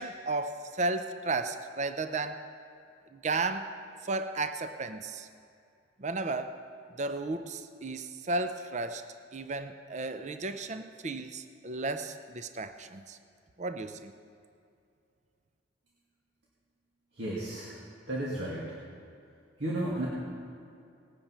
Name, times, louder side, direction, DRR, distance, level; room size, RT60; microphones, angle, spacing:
voice 1, 0.0-2.4 3.1-3.7 4.0-5.3 6.0-6.6 7.0-9.0 9.3-13.2 13.6-14.1, right 3 dB, 40° right, 9 dB, 0.5 m, -34 dB
voice 2, 17.1-17.8 18.1-18.8 19.6-20.1, right 1 dB, 70° right, -6 dB, 2.1 m, -33 dB
19.0 x 9.0 x 5.6 m, 2.4 s
head